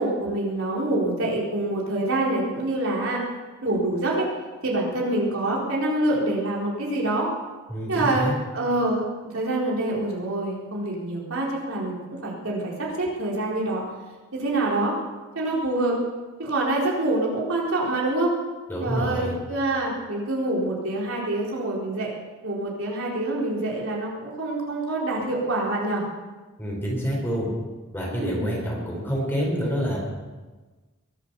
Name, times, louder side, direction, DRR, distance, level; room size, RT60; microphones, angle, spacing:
voice 1, 0.0-3.2 3.6-4.3 4.6-7.3 7.9-8.3 8.5-13.8 14.3-14.9 15.3-16.0 16.4-18.3 18.8-22.1 22.4-26.0 28.1-28.6, right 2 dB, 70° right, -4 dB, 4.3 m, -26 dB
voice 2, 7.7-8.4 18.7-19.3 26.6-27.5 27.9-30.0, equal, 10° left, -3 dB, 4.7 m, -27 dB
22.5 x 8.3 x 7.0 m, 1.3 s
head